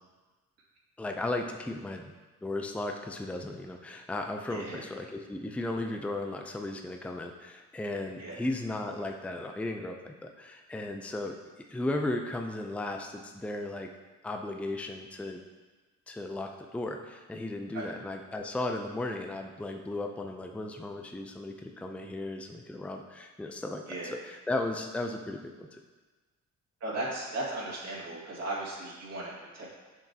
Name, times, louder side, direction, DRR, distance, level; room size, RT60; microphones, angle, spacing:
voice 1, 1.0-2.0 2.4-11.4 11.7-13.9 14.2-15.4 16.1-25.8, left 2 dB, 5° left, 3 dB, 0.5 m, -35 dB
voice 2, 4.5-4.8 8.2-8.4 17.7-17.9 23.9-24.1 26.8-29.7, right 2 dB, 60° right, -6 dB, 2.1 m, -36 dB
7.3 x 5.7 x 2.8 m, 1.3 s
cardioid pair, 90°, 30 cm